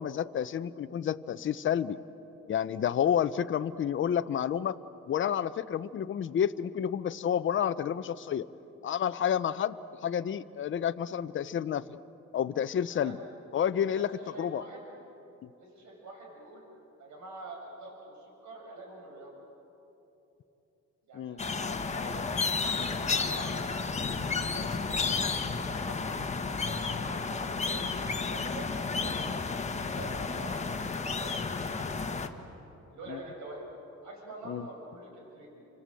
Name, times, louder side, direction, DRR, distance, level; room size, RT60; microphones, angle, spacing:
voice 1, 0.0-2.0 2.5-4.8 5.1-8.5 8.8-9.8 10.0-12.0 12.3-13.2 13.5-14.1 14.4-14.6 15.4-15.5 21.1-21.4 33.1-33.2 34.5-34.7, left 9 dB, 40° left, 12 dB, 0.7 m, -30 dB
voice 2, 13.9-14.9 15.6-16.6 17.0-19.4 21.1-22.2 22.6-26.0 26.6-32.3 32.9-33.7 34.0-35.6, right 2 dB, 75° right, 0 dB, 7.1 m, -46 dB
sound 1, 21.4-32.3, left 4 dB, 25° left, 1.4 m, -32 dB
30.0 x 26.0 x 7.7 m, 3.0 s
cardioid pair, 115°, 29 cm